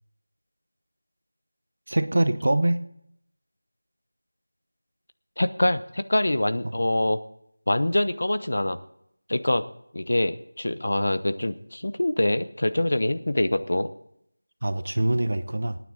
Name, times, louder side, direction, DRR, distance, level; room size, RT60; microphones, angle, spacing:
voice 1, 1.9-2.8 14.6-15.8, right 1 dB, 45° right, 11 dB, 1.0 m, -23 dB
voice 2, 5.4-7.2 7.7-8.8 9.3-9.6 9.9-13.9, left 1 dB, 55° left, 11 dB, 0.9 m, -24 dB
25.5 x 9.5 x 4.0 m, 0.73 s
figure-of-eight pair, 180°, 0 cm